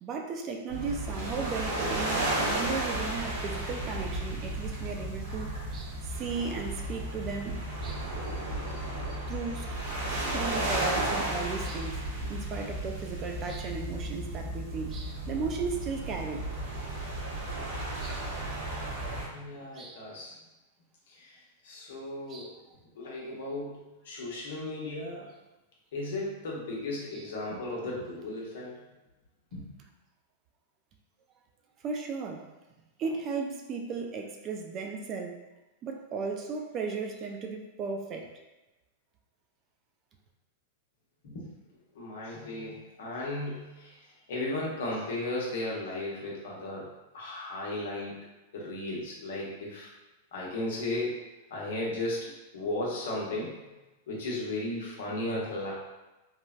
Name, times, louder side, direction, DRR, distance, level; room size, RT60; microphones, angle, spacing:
voice 1, 0.0-8.1 9.3-9.7 10.3-12.0 12.3-16.5 18.0-18.2 19.7-20.0 22.3-22.6 27.1-27.2 31.8-32.5 33.0-35.4 35.8-38.3, right 5 dB, 35° right, 3 dB, 0.4 m, -36 dB
sound 1, 0.7-19.3, right 1 dB, 75° right, 1.2 m, -33 dB
voice 2, 19.3-20.3 21.1-21.4 21.6-22.5 23.0-25.3 25.9-28.8 29.5-29.6 41.2-41.5 41.9-46.9 47.1-48.2 48.5-49.9 50.3-51.2 51.5-53.5 54.1-55.7, left 2 dB, 75° left, -4 dB, 0.9 m, -35 dB
3.2 x 2.1 x 2.4 m, 1.0 s
hypercardioid pair, 120°, 0 cm